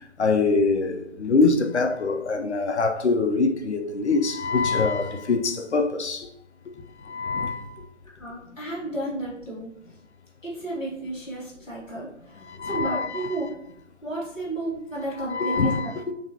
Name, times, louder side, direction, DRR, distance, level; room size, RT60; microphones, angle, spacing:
voice 1, 0.2-6.3 7.0-7.7 12.4-13.4 15.2-16.0, left 3 dB, 65° left, 0.5 m, -24 dB
voice 2, 8.2-10.0 10.4-13.5 14.0-15.9, right 2 dB, 5° right, 0.8 m, -33 dB
4.1 x 3.0 x 2.8 m
figure-of-eight pair, 165°, 37 cm